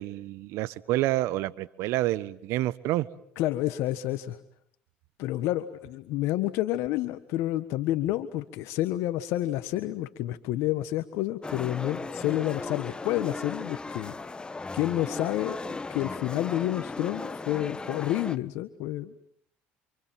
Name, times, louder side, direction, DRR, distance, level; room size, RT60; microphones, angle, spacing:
voice 1, 0.0-3.1, right 16 dB, 70° right, 16 dB, 1.3 m, -28 dB
voice 2, 3.4-4.4 5.2-14.3 14.7-15.6 15.9-19.2, left 14 dB, 75° left, 10 dB, 1.4 m, -29 dB
Romanian musicians playing in the center of madrid, 11.4-18.4, left 3 dB, 20° left, 1.2 m, -37 dB
28.5 x 27.0 x 7.7 m, 0.66 s
supercardioid pair, 80°, 5 cm